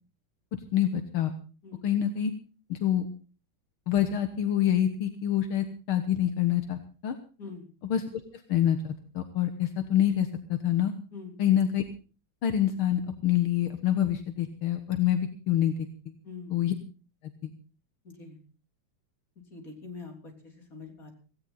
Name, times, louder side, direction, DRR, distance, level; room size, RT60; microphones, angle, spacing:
voice 1, 0.7-1.3 1.8-2.3 2.7-3.1 3.9-7.2 7.9-8.2 8.5-10.9 11.4-11.8 12.4-15.7 16.5-16.7 17.4-17.5, left 11 dB, 75° left, 8 dB, 2.1 m, -26 dB
voice 2, 16.2-16.6 18.0-18.4 19.5-21.1, left 4 dB, 40° left, 2 dB, 4.0 m, -44 dB
17.0 x 16.5 x 4.1 m, 0.35 s
omnidirectional pair, 2.3 m